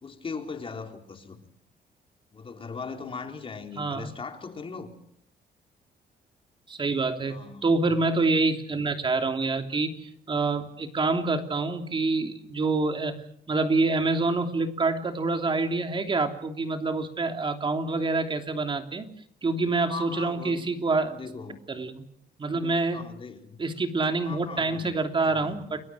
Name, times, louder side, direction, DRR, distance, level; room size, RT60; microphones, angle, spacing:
voice 1, 0.0-1.5 2.3-4.9 7.3-7.6 19.9-20.6 21.1-21.6 22.9-23.6 24.3-25.0 25.3-25.6, left 4 dB, 35° left, 4 dB, 3.7 m, -39 dB
voice 2, 3.8-4.1 6.7-7.4 7.6-13.1 13.5-19.1 19.4-21.2 21.7-22.0 22.4-23.0 23.6-25.8, right 3 dB, 30° right, 5 dB, 3.1 m, -26 dB
30.0 x 21.5 x 6.3 m, 0.69 s
cardioid pair, 125°, 17 cm